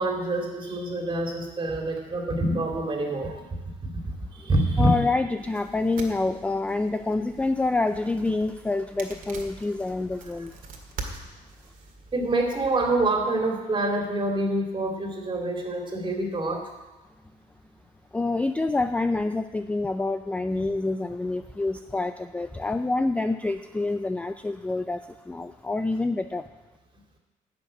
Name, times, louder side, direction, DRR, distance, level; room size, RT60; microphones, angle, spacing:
voice 1, 0.0-3.4 3.8-4.0 4.3-5.0 12.1-16.7, right 2 dB, 30° right, 2 dB, 2.6 m, -26 dB
voice 2, 4.8-10.5 18.1-25.0 25.3-26.4, left 2 dB, 10° left, 9 dB, 0.3 m, -27 dB
sound 1, 5.4-12.9, right 3 dB, 55° right, 1.9 m, -44 dB
11.5 x 6.3 x 8.7 m, 1.2 s
cardioid pair, 110°, 17 cm